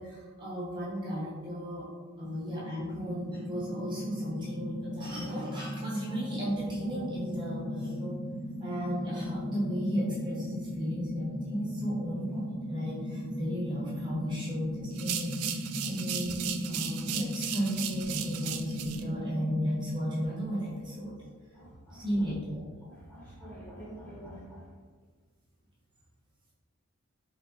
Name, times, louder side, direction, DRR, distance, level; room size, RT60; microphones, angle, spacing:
voice 1, 0.0-1.9 2.2-8.2 8.6-15.6 15.8-21.1 21.9-22.6, equal, 20° right, -7 dB, 0.8 m, -35 dB
sound 1, 2.2-20.3, left 1 dB, 40° left, 0.4 m, -37 dB
sound 2, 14.9-19.0, right 10 dB, 85° right, 0.3 m, -36 dB
voice 2, 21.5-22.3 22.8-24.7, equal, 10° left, -7 dB, 0.9 m, -47 dB
4.0 x 2.9 x 2.4 m, 1.5 s
head